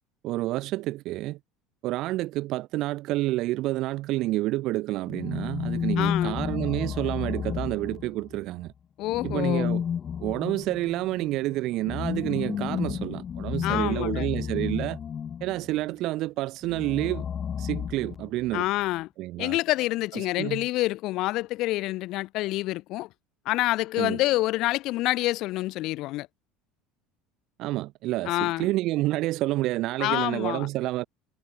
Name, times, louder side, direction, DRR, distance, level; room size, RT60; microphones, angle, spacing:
voice 1, 0.2-1.4 1.8-8.7 9.2-9.8 10.2-15.0 15.4-17.2 17.6-18.7 19.2-19.6 20.1-20.6 24.0-24.2 27.6-31.0, right 17 dB, 50° right, 2.0 m, -29 dB
sound 1, 5.1-8.4 9.1-15.7 16.6-18.6, left 8 dB, 35° left, 2.2 m, -32 dB
voice 2, 6.0-6.4 9.0-9.7 13.6-14.3 18.5-19.1 19.4-23.1 23.4-26.3 28.2-28.7 30.0-30.7, left 18 dB, 50° left, 1.7 m, -27 dB
figure-of-eight pair, 65°, 0 cm